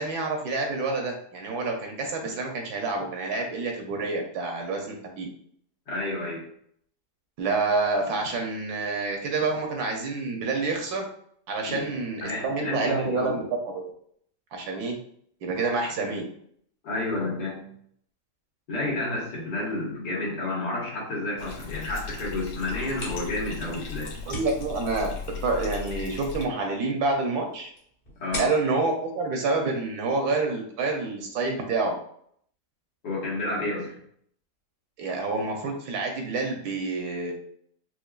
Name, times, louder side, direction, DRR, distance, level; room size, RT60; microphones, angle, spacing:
voice 1, 0.0-5.3 7.4-11.1 11.5-13.8 14.5-14.9 15.4-16.3 24.2-25.1 25.4-27.7 28.4-32.0 35.0-37.3, right 3 dB, 75° right, 2 dB, 1.1 m, -28 dB
voice 2, 5.9-6.5 11.7-11.8 12.2-13.4 16.8-17.7 18.7-24.1 28.2-28.5 33.0-33.9, left 2 dB, 85° left, -5 dB, 1.9 m, -30 dB
Bathtub (filling or washing), 21.4-26.5, left 5 dB, 70° left, 0.8 m, -37 dB
sound 1, 22.7-30.2, left 1 dB, 35° left, 1.0 m, -43 dB
4.4 x 2.4 x 2.3 m, 0.64 s
omnidirectional pair, 1.7 m